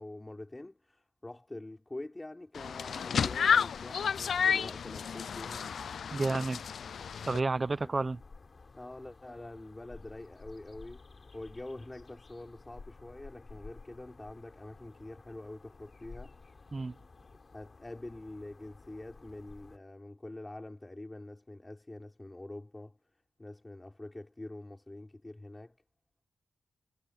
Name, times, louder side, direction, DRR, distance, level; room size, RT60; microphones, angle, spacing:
voice 1, 0.0-5.8 7.8-8.0 8.7-11.0 11.3-16.4 17.5-23.0 23.4-25.8, left 2 dB, 15° left, 3.8 m, -45 dB
sound 1, 2.5-7.4, left 7 dB, 75° left, 0.3 m, -31 dB
sound 2, 3.2-19.8, left 4 dB, 40° left, 3.8 m, -54 dB
voice 2, 6.1-6.6 7.2-8.2 16.7-16.9, right 3 dB, 30° right, 0.6 m, -30 dB
wide cardioid pair, 125°, 0 cm